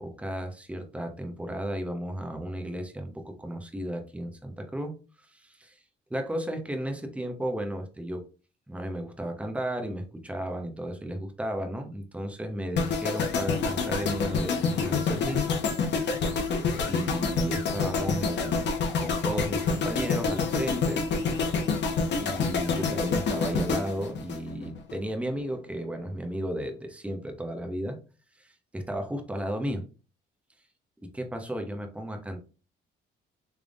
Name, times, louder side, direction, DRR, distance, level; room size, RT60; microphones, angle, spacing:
voice 1, 0.0-4.9 5.2-5.8 6.1-8.2 8.7-15.5 16.9-18.6 19.0-21.0 22.2-28.0 28.4-29.9 31.1-32.4, right 1 dB, 5° right, 4 dB, 0.8 m, -34 dB
sound 1, 12.8-25.0 25.2-25.5, left 4 dB, 60° left, 0.9 m, -27 dB
3.5 x 3.4 x 2.5 m, 0.34 s
cardioid pair, 90°, 20 cm